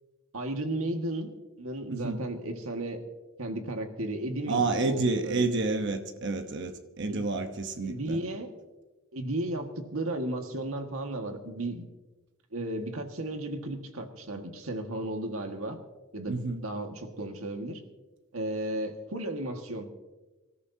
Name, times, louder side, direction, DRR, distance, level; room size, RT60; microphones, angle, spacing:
voice 1, 0.3-1.3 1.6-3.0 3.4-5.5 7.1-7.3 7.8-8.5 9.1-11.9 12.5-15.8 16.1-17.8 18.3-19.9, right 1 dB, 75° right, 1.7 m, -34 dB
voice 2, 1.9-2.2 4.5-8.2 16.3-16.6, right 3 dB, 55° right, 1.0 m, -29 dB
26.0 x 13.5 x 2.8 m
head